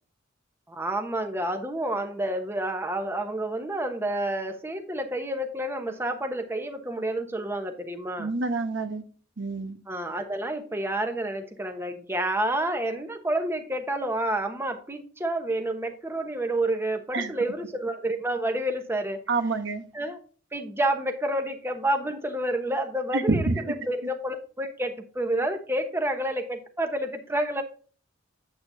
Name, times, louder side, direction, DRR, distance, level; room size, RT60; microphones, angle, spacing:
voice 1, 0.7-8.3 9.9-19.2 19.9-20.2 20.5-27.6, right 1 dB, 10° right, 5 dB, 1.0 m, -29 dB
voice 2, 8.2-9.0 9.4-9.8 17.1-17.3 19.3-19.8 23.1-23.5, right 3 dB, 65° right, 8 dB, 1.1 m, -27 dB
8.7 x 8.3 x 2.7 m, 0.40 s
head